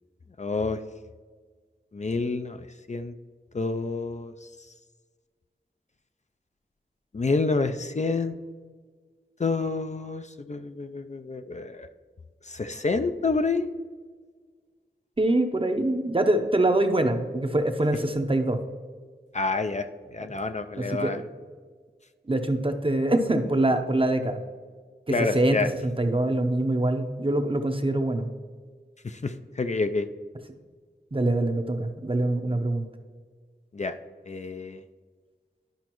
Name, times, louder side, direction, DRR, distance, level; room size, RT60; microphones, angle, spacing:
voice 1, 0.4-0.8 1.9-2.6 2.9-3.1 3.5-4.3 7.1-8.4 9.4-11.9 12.5-13.7 19.3-21.2 25.1-25.7 29.0-30.1 33.7-34.0 34.3-34.8, left 3 dB, 40° left, 8 dB, 0.4 m, -28 dB
voice 2, 15.2-18.6 20.8-21.2 22.3-24.4 25.1-28.3 31.1-32.9, right 1 dB, 30° right, 6 dB, 0.7 m, -24 dB
11.5 x 5.1 x 3.0 m, 1.5 s
wide cardioid pair, 50°, 18 cm